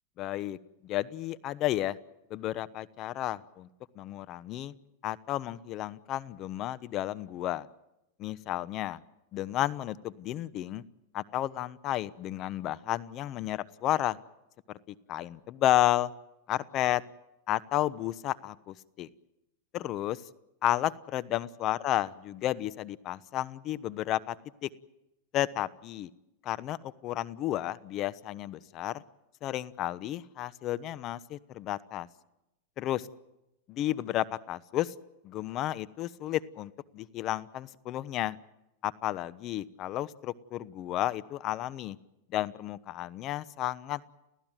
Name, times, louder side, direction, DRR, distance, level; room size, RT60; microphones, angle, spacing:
voice 1, 0.2-0.6 0.8-2.0 2.3-3.7 4.0-4.7 5.0-7.7 8.2-9.0 9.3-10.8 11.1-14.2 14.7-16.1 16.5-17.0 17.5-19.1 19.7-20.2 20.6-24.4 24.6-24.7 25.3-26.1 26.4-29.0 29.4-32.1 32.8-33.0 33.7-34.9 35.2-38.4 38.8-42.0 42.3-44.2, left 14 dB, 40° left, 17 dB, 1.0 m, -32 dB
30.0 x 15.0 x 9.1 m, 0.93 s
supercardioid pair, 130°, 0 cm